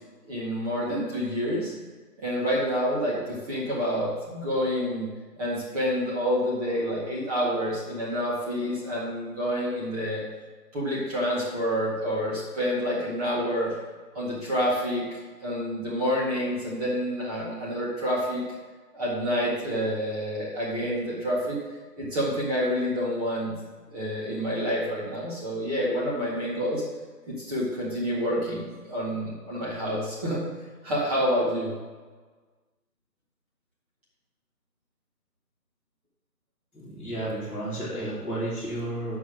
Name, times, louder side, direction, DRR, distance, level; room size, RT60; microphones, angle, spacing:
voice 1, 0.3-1.7 2.2-5.1 5.4-10.2 10.7-13.7 14.1-18.4 18.9-21.6 22.0-23.6 23.9-26.8 27.3-30.4 30.8-31.7, equal, 25° right, -6 dB, 2.1 m, -28 dB
voice 2, 36.7-39.2, right 1 dB, 5° right, -17 dB, 1.3 m, -32 dB
8.2 x 6.1 x 6.6 m, 1.4 s
figure-of-eight pair, 150°, 49 cm